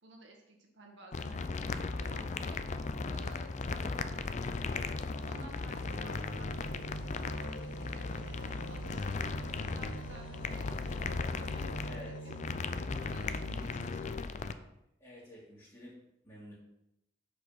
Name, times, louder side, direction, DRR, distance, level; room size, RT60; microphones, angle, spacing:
voice 1, 0.0-4.6 5.2-12.4 12.9-14.7, right 2 dB, 65° right, 1 dB, 1.7 m, -54 dB
sound 1, 1.1-14.5, left 4 dB, 40° left, 0.4 m, -37 dB
sound 2, 1.6-14.2, equal, 75° left, 0.7 m, -47 dB
sound 3, 3.5-11.3, right 1 dB, 25° right, 0.6 m, -53 dB
voice 2, 11.8-12.3 15.0-16.5, left 1 dB, 20° left, -8 dB, 2.0 m, -50 dB
6.6 x 5.3 x 5.7 m, 0.83 s
head